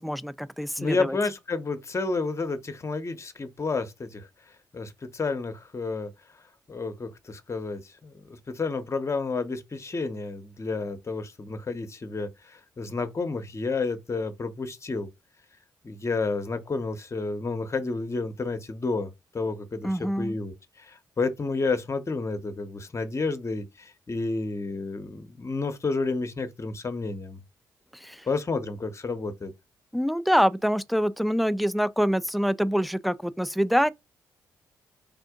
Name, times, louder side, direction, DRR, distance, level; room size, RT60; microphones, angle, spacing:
voice 1, 0.0-1.2 19.8-20.4 27.9-28.3 29.9-33.9, equal, ahead, 0.4 m, -25 dB
voice 2, 0.8-4.3 4.7-6.1 6.7-15.1 15.8-27.4 28.3-29.5, left 3 dB, 30° left, 0.8 m, -30 dB
3.6 x 2.5 x 3.6 m
hypercardioid pair, 40°, 9 cm